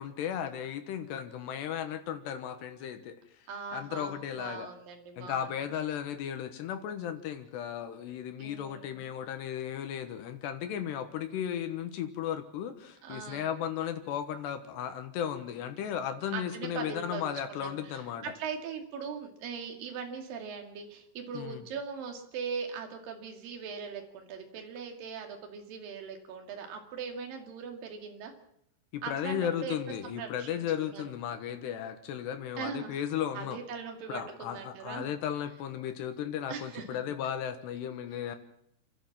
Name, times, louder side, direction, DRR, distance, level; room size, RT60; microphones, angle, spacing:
voice 1, 0.0-3.2 3.7-4.7 5.2-18.2 21.3-21.6 28.9-33.6 34.1-38.4, left 9 dB, 70° left, 8 dB, 3.0 m, -35 dB
voice 2, 3.5-5.5 8.4-9.1 13.0-13.5 16.3-17.2 17.5-28.3 29.0-29.8 30.0-31.0 32.6-33.0 33.3-35.1 36.5-37.0, right 6 dB, 50° right, 3 dB, 3.7 m, -40 dB
30.0 x 12.0 x 7.4 m, 0.74 s
omnidirectional pair, 5.8 m